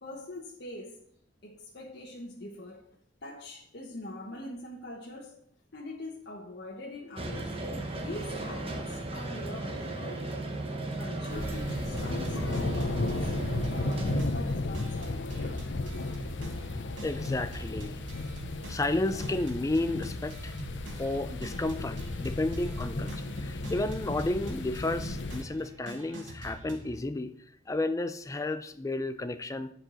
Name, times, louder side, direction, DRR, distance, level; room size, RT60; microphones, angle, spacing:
voice 1, 0.0-1.0 1.4-2.9 3.2-5.4 5.7-7.6 7.9-10.3 10.9-13.3 13.7-15.6 16.0-16.1, left 1 dB, 60° left, 1.2 m, -43 dB
sound 1, 7.2-14.2, right 2 dB, 30° right, 1.1 m, -35 dB
sound 2, 11.3-25.4, left 2 dB, 75° left, 0.7 m, -35 dB
sound 3, 11.4-27.0, right 2 dB, 85° right, 1.8 m, -45 dB
voice 2, 17.0-18.0 18.7-20.6 21.0-23.1 23.4-27.3 27.7-29.7, left 2 dB, 15° left, 0.4 m, -32 dB
10.0 x 4.8 x 6.2 m
head